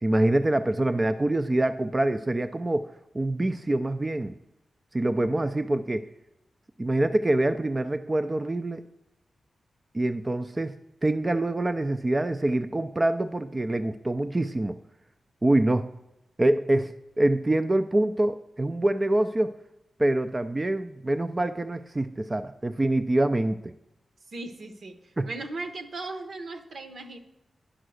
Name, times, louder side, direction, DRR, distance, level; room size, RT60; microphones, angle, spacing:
voice 1, 0.0-4.3 4.9-6.1 6.8-8.8 9.9-10.7 11.0-14.8 15.4-15.9 16.4-19.5 20.0-23.7 25.2-25.3, right 1 dB, 25° right, 9 dB, 0.4 m, -25 dB
voice 2, 24.3-27.2, right 2 dB, 70° right, 7 dB, 1.1 m, -37 dB
10.0 x 5.7 x 6.3 m, 0.88 s
cardioid pair, 80°, 0 cm